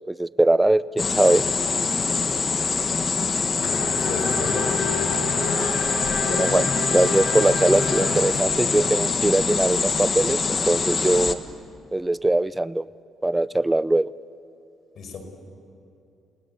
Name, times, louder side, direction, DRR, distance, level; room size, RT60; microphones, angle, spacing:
voice 1, 0.1-1.4 6.3-11.4 11.9-12.9 13.2-14.1, right 2 dB, 15° right, 18 dB, 0.6 m, -21 dB
sound 1, 1.0-11.3, left 4 dB, 40° left, 1.5 m, -24 dB
Race car auto racing / Accelerating revving vroom, 3.2-8.7, left 3 dB, 85° left, 5.7 m, -30 dB
voice 2, 4.0-4.8 14.9-15.2, left 4 dB, 60° left, 6 dB, 5.0 m, -33 dB
30.0 x 19.0 x 8.3 m, 2.6 s
cardioid pair, 90°, 0 cm